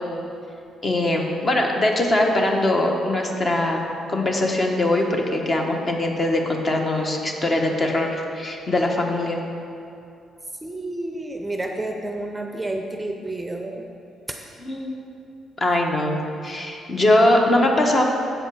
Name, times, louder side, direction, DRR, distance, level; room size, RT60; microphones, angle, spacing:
voice 1, 0.8-9.4 14.6-14.9 15.6-18.0, left 1 dB, 35° left, 2 dB, 1.1 m, -21 dB
voice 2, 10.6-13.8 14.3-14.6, right 2 dB, 15° right, 4 dB, 0.6 m, -30 dB
7.8 x 5.3 x 6.2 m, 2.6 s
cardioid pair, 90°, 0 cm